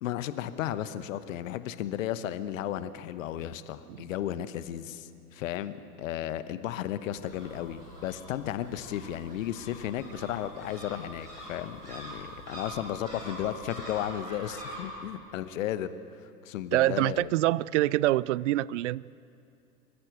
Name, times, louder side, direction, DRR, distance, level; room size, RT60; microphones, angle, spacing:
voice 1, 0.0-15.9 16.4-17.3, left 11 dB, 55° left, 13 dB, 1.1 m, -34 dB
sound 1, 7.1-14.8, equal, 90° right, 6.8 m, -44 dB
voice 2, 16.7-19.0, right 16 dB, 50° right, 23 dB, 0.5 m, -25 dB
25.0 x 14.5 x 8.1 m, 2.5 s
figure-of-eight pair, 100°, 47 cm